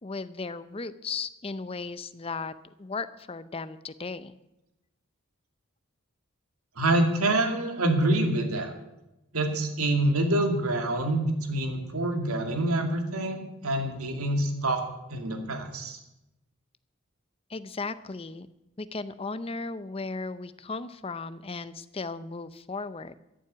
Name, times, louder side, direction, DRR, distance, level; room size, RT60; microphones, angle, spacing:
voice 1, 0.0-2.5 2.8-4.4 17.5-18.5 18.8-23.1, left 4 dB, 25° left, 13 dB, 0.6 m, -36 dB
voice 2, 6.8-8.7 9.3-14.8 15.1-16.0, right 1 dB, 85° right, 4 dB, 2.4 m, -26 dB
14.0 x 7.6 x 9.4 m, 0.92 s
head